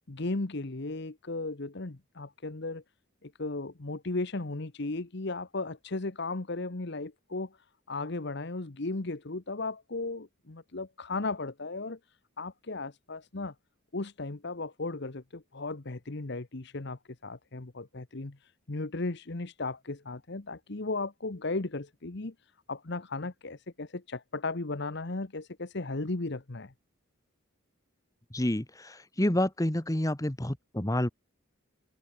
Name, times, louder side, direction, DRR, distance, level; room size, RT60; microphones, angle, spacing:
voice 1, 0.1-2.8 3.2-7.6 7.9-12.0 12.4-13.5 13.9-18.4 18.7-22.3 22.7-26.7, left 3 dB, 55° left, 1.1 m, -36 dB
voice 2, 28.3-31.1, left 1 dB, 15° left, 1.2 m, -29 dB
head